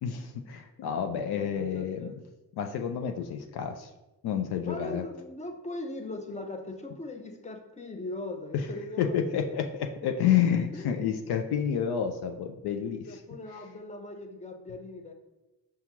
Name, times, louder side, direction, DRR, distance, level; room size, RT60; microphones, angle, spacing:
voice 1, 0.0-2.1 2.6-3.9 4.2-5.0 9.0-13.1, left 8 dB, 60° left, 5 dB, 0.5 m, -29 dB
voice 2, 1.3-2.2 4.6-9.6 10.7-11.0 13.1-15.1, left 2 dB, 15° left, 5 dB, 0.6 m, -40 dB
5.5 x 2.3 x 2.9 m, 1.0 s
supercardioid pair, 50°, 45 cm